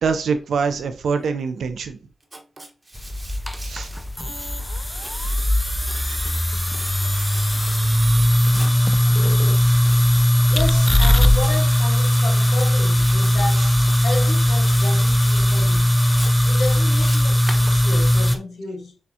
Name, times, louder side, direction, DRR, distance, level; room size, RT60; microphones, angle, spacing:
voice 1, 0.0-2.0 3.6-3.9, right 5 dB, 80° right, 0.6 m, -24 dB
Writing, 2.2-4.5 4.9-6.4 6.7-7.8 8.4-8.7 9.8-10.3 10.6-11.6 12.0-12.7 13.0-13.6 13.9-14.3 14.6-15.7 16.1-18.4, right 2 dB, 25° right, 1.1 m, -40 dB
sound 1, 3.0-18.4, equal, 10° left, 0.4 m, -18 dB
voice 2, 8.6-9.7 10.2-16.0 16.5-19.0, left 3 dB, 80° left, 1.0 m, -33 dB
6.3 x 2.4 x 2.7 m
cardioid pair, 55°, 0 cm